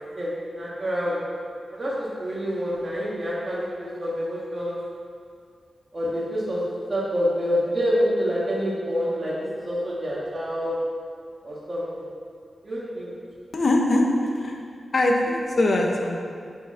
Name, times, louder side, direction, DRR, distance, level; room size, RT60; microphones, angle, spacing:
voice 1, 0.1-1.2 1.7-4.8 5.9-6.6 6.9-10.8 11.4-12.1 12.6-13.1 15.5-15.6, equal, 30° right, -7 dB, 1.7 m, -27 dB
voice 2, 13.5-14.6 14.9-16.2, left 1 dB, 40° left, 1 dB, 1.0 m, -22 dB
6.3 x 5.6 x 5.6 m, 2.2 s
wide cardioid pair, 145°, 0 cm